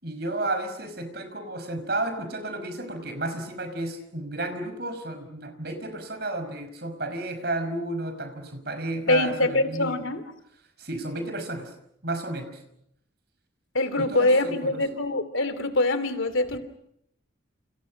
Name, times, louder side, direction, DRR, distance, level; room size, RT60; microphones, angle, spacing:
voice 1, 0.0-10.0 10.8-11.8 12.0-12.6 14.0-14.8, right 2 dB, 55° right, 8 dB, 5.5 m, -32 dB
voice 2, 9.1-10.2 13.7-16.6, left 2 dB, 90° left, 12 dB, 2.8 m, -24 dB
29.5 x 29.0 x 6.4 m, 0.75 s
head